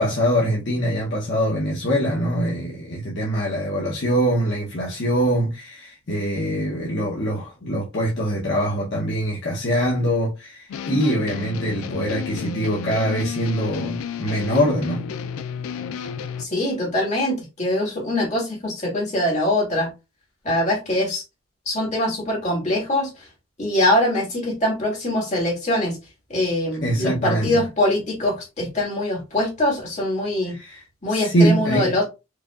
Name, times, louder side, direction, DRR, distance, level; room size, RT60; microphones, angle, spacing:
voice 1, 0.0-15.1 26.8-27.7 30.5-30.8 31.1-32.0, equal, 55° left, 0.8 m, -23 dB
sound 1, 10.7-16.4, left 6 dB, 85° left, 0.3 m, -32 dB
voice 2, 16.4-19.9 20.4-21.2 21.7-23.3 23.6-26.0 26.3-30.6 31.0-32.1, left 1 dB, 35° left, 2.0 m, -23 dB
4.8 x 2.8 x 2.4 m
head